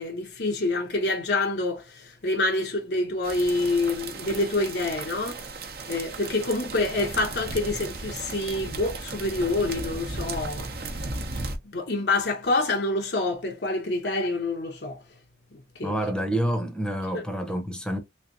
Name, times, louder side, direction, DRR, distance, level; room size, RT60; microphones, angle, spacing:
voice 1, 0.0-5.4 5.9-10.7 11.7-15.0 15.7-15.9 17.1-17.2, left 2 dB, 75° left, 1.0 m, -27 dB
sound 1, 3.2-11.6, right 3 dB, 60° right, 0.9 m, -35 dB
voice 2, 15.8-18.0, right 1 dB, 5° left, 0.8 m, -28 dB
3.5 x 3.3 x 2.6 m
head